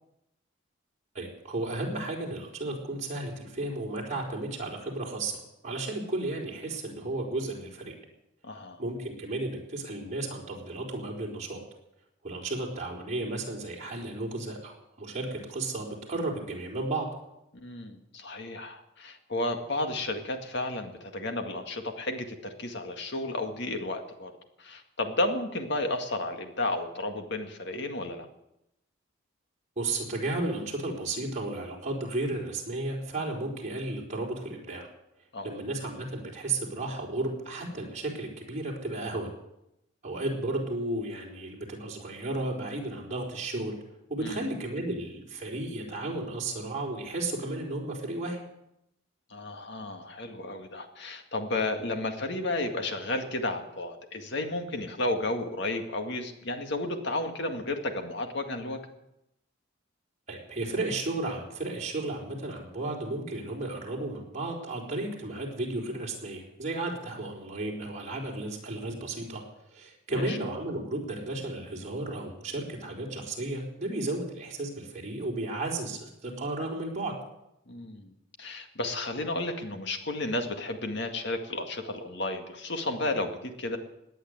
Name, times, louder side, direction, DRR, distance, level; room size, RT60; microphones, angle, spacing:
voice 1, 1.1-7.9 8.8-11.6 12.2-17.1 29.8-34.9 35.4-39.3 40.0-43.8 44.1-48.4 60.3-69.4 69.7-77.1, right 2 dB, 35° right, -2 dB, 4.4 m, -33 dB
voice 2, 8.4-8.8 17.5-24.3 24.6-28.3 35.3-35.5 44.2-44.4 49.3-58.8 70.1-70.4 77.7-78.1 78.4-83.8, left 2 dB, 55° left, 5 dB, 2.0 m, -32 dB
18.0 x 9.9 x 8.0 m, 0.84 s
head